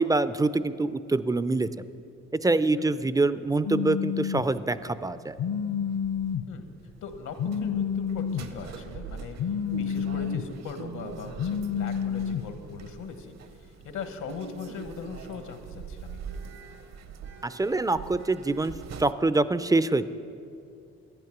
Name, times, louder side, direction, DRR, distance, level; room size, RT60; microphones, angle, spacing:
voice 1, 0.0-1.7 2.4-5.3 17.4-18.7 19.0-20.1, right 2 dB, 15° right, 14 dB, 0.3 m, -25 dB
Telephone, 3.6-4.4 5.4-6.4 7.4-8.4 9.4-10.4 11.4-12.4, left 7 dB, 60° left, 0.6 m, -29 dB
sound 1, 4.4-19.1, right 6 dB, 60° right, 0.7 m, -44 dB
voice 2, 7.0-16.4, left 5 dB, 75° left, 7 dB, 1.2 m, -40 dB
12.5 x 9.1 x 6.0 m, 2.6 s
cardioid pair, 90°, 30 cm